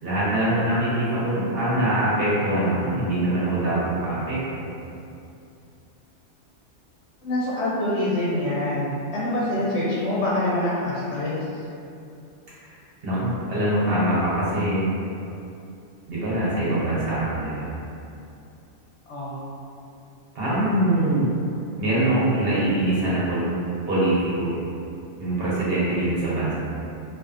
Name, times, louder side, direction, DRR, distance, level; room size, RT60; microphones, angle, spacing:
voice 1, 0.0-4.7 12.6-12.7 13.0-14.9 16.1-17.7 20.3-21.3 21.8-23.4 23.9-24.6 25.2-26.5, right 1 dB, 60° right, -9 dB, 0.9 m, -23 dB
voice 2, 7.2-11.4 19.1-19.4, left 1 dB, 70° left, -8 dB, 0.8 m, -25 dB
2.5 x 2.3 x 2.4 m, 2.6 s
omnidirectional pair, 1.2 m